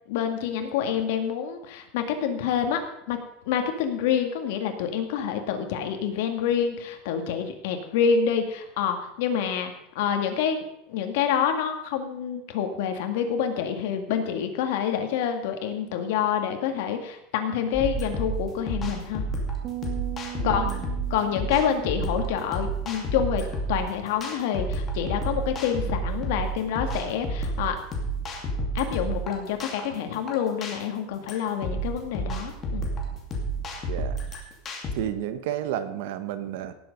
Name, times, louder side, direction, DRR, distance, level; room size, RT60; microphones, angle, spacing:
voice 1, 0.1-2.8 3.1-3.2 3.5-19.2 20.4-20.6 21.1-27.8 28.7-32.9, left 8 dB, 65° left, 6 dB, 1.9 m, -27 dB
sound 1, 17.7-34.9, right 2 dB, 20° left, 2.4 m, -30 dB
sound 2, 19.6-23.1, right 16 dB, 35° right, 0.8 m, -40 dB
voice 2, 20.4-20.8 33.9-34.2 34.9-36.7, right 11 dB, 65° right, 12 dB, 1.2 m, -31 dB
18.0 x 7.7 x 5.3 m, 0.82 s
supercardioid pair, 170°, 0 cm